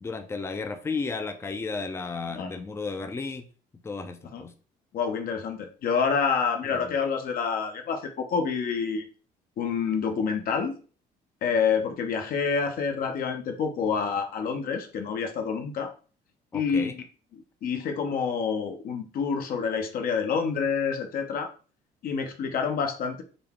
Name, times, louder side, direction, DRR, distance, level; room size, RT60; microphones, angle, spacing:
voice 1, 0.0-3.4 3.8-4.5 6.7-6.9 16.5-16.9, left 4 dB, 15° left, 8 dB, 0.4 m, -33 dB
voice 2, 4.9-9.0 9.6-10.7 11.4-15.9 16.5-17.0 17.3-21.5 22.0-23.2, left 6 dB, 60° left, 6 dB, 0.8 m, -28 dB
3.9 x 2.3 x 3.5 m, 0.37 s
cardioid pair, 110°, 17 cm